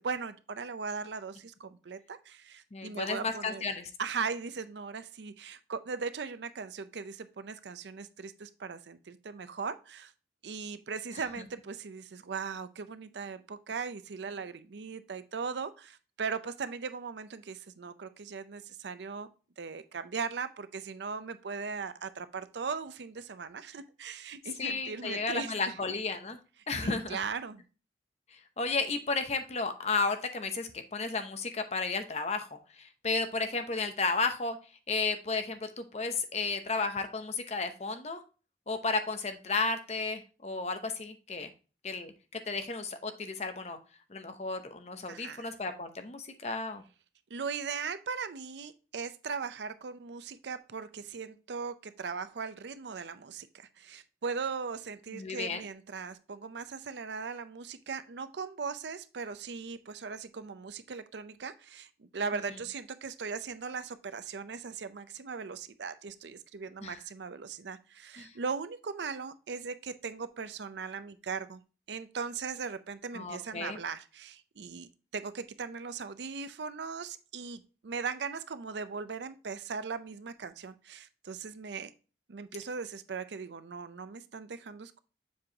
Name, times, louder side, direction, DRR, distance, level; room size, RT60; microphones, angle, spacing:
voice 1, 0.0-3.6 4.0-10.1 10.4-19.3 19.6-25.7 26.8-27.6 45.1-45.5 47.3-71.6 71.9-81.9 82.3-85.0, right 5 dB, 80° right, 12 dB, 0.5 m, -39 dB
voice 2, 2.7-3.9 24.6-26.4 26.7-27.2 28.6-34.6 34.9-38.2 38.7-41.5 41.8-43.8 44.1-46.8 55.1-55.6 66.8-67.0 68.2-68.3 73.1-73.8, left 4 dB, 40° left, 7 dB, 0.8 m, -33 dB
7.3 x 4.7 x 2.8 m, 0.35 s
head